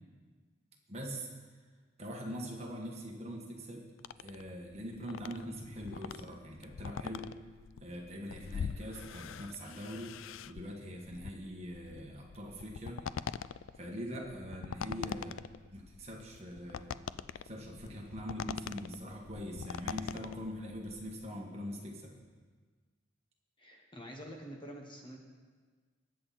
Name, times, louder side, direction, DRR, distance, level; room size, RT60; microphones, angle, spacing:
voice 1, 0.9-1.3 2.0-3.9 4.2-7.3 7.8-10.2 10.5-13.0 13.8-15.4 15.7-16.9 17.4-22.1, equal, 30° right, -1 dB, 1.8 m, -43 dB
sound 1, 4.0-21.3, left 7 dB, 75° left, 0.3 m, -43 dB
voice 2, 23.6-25.2, equal, 25° left, 0 dB, 1.4 m, -47 dB
21.5 x 7.7 x 4.3 m, 1.5 s
head